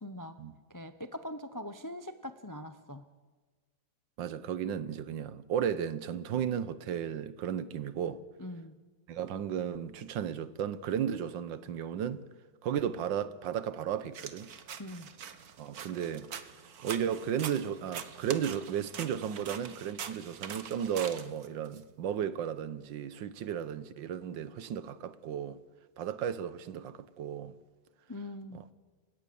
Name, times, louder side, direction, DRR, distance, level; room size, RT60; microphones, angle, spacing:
voice 1, 0.0-0.4 0.7-3.0 8.4-8.7 14.8-15.1 28.1-28.6, left 1 dB, 30° left, 0.3 m, -42 dB
voice 2, 4.2-8.2 9.1-12.2 12.6-14.5 15.6-16.3 16.8-25.6 26.0-27.5 28.5-28.6, right 9 dB, 80° right, 1.6 m, -34 dB
sound 1, 14.1-21.8, right 8 dB, 55° right, 1.5 m, -44 dB
30.0 x 17.0 x 7.0 m
omnidirectional pair, 2.0 m